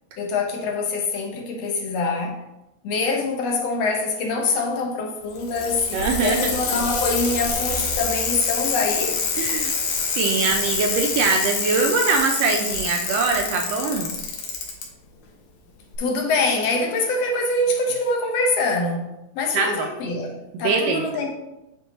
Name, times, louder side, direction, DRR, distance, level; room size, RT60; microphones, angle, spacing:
voice 1, 0.2-2.4 2.8-9.2 16.0-21.3, left 3 dB, 70° left, 2 dB, 1.9 m, -24 dB
Bicycle, 5.2-14.8 15.9-16.0, left 5 dB, 85° left, 2.6 m, -26 dB
voice 2, 5.9-6.5 9.4-9.7 10.2-14.1 19.5-19.9 20.5-21.1, right 4 dB, 75° right, 3 dB, 1.6 m, -22 dB
8.2 x 4.7 x 4.0 m, 0.92 s
omnidirectional pair, 3.3 m